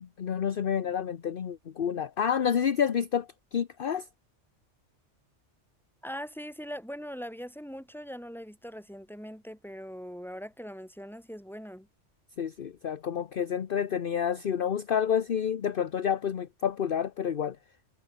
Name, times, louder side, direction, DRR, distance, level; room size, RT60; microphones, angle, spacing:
voice 1, 0.0-4.1 12.4-17.6, left 8 dB, 55° left, 1.0 m, -29 dB
voice 2, 6.0-11.9, equal, ahead, 5.7 m, -41 dB
omnidirectional pair, 1.2 m